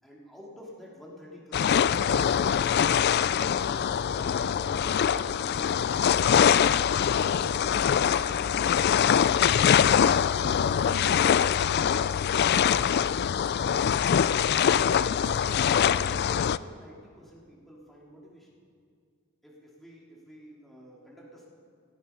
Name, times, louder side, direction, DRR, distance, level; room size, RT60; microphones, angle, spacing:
voice 1, 0.0-6.4 7.0-9.5 9.8-11.7 12.0-13.4 14.2-18.6 19.4-21.5, equal, ahead, -5 dB, 2.8 m, -48 dB
sound 1, 1.5-16.6, left 8 dB, 50° left, 0.3 m, -23 dB
18.0 x 12.5 x 5.8 m, 2.1 s
head